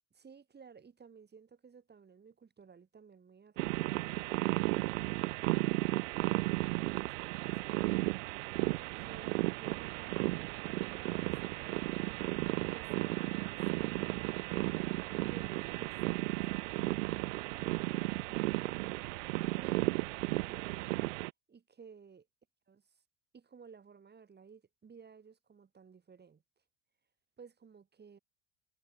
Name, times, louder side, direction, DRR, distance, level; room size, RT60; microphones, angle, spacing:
voice 1, 0.1-7.9 8.7-12.2 12.6-13.6 13.9-17.2 17.6-18.5 19.6-20.0 20.3-21.1 21.5-22.3 22.7-23.0 23.3-26.4 27.4-28.2, right 6 dB, 25° right, 3.9 m, -56 dB
sound 1, 3.6-21.3, right 23 dB, 70° right, 0.6 m, -34 dB
hypercardioid pair, 75°, 39 cm